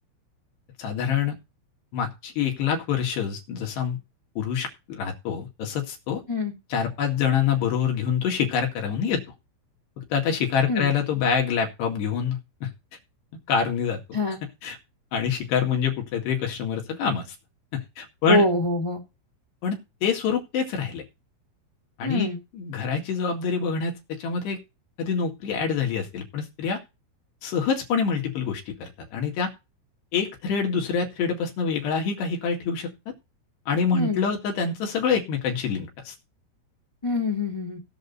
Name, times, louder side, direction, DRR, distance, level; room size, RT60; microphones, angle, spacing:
voice 1, 0.8-1.4 1.9-4.0 4.4-6.2 6.7-9.2 10.1-12.7 13.5-14.0 14.6-14.8 15.1-17.2 17.7-18.4 19.6-21.0 22.0-22.3 22.5-24.6 25.0-26.8 27.4-29.5 30.1-33.1 33.7-36.1, left 6 dB, 65° left, 3 dB, 4.0 m, -26 dB
voice 2, 18.3-19.0 22.0-22.4 33.9-34.2 37.0-37.8, left 2 dB, 15° left, -2 dB, 1.1 m, -24 dB
18.0 x 6.5 x 4.1 m, 0.27 s
omnidirectional pair, 5.7 m